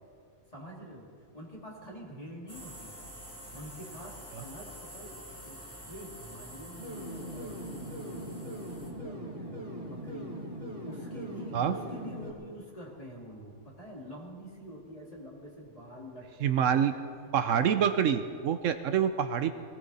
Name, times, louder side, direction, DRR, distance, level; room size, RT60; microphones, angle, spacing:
voice 1, 0.5-3.1 3.5-5.1 5.4-5.6 5.9-10.4 10.8-17.0 17.3-17.6, equal, 25° left, -2 dB, 2.8 m, -46 dB
sound 1, 2.5-8.9, equal, 10° left, 2.2 m, -47 dB
sound 2, 6.8-12.3, equal, 30° right, 3.4 m, -40 dB
voice 2, 16.4-16.9 17.3-19.5, right 8 dB, 75° right, 10 dB, 1.0 m, -26 dB
19.0 x 18.0 x 4.2 m, 2.2 s
omnidirectional pair, 1.4 m